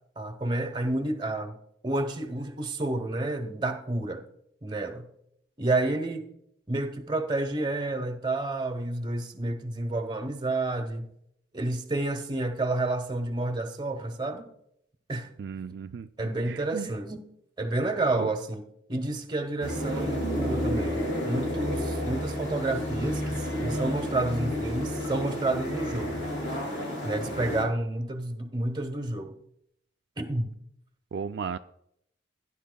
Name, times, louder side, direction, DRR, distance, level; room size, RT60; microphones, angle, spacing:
voice 1, 0.2-1.5 1.8-4.2 4.6-5.1 5.6-6.3 6.7-11.1 11.5-14.5 15.1-15.3 15.7-15.8 16.2-17.2 17.6-18.6 18.9-26.2 27.0-29.4 30.2-30.5, right 2 dB, 25° right, 1.0 m, -30 dB
voice 2, 15.4-16.1 16.5-16.9 18.2-18.3 31.1-31.6, right 6 dB, 65° right, 0.3 m, -35 dB
sound 1, 19.6-27.6, equal, 70° left, 4.7 m, -31 dB
17.0 x 10.0 x 2.2 m
head